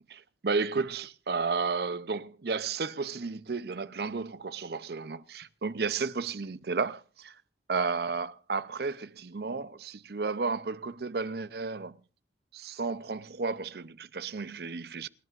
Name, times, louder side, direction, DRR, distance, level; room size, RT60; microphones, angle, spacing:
voice 1, 0.1-7.3 7.7-12.0 12.5-15.1, right 4 dB, 60° right, 0.6 m, -33 dB
28.0 x 11.0 x 2.5 m
head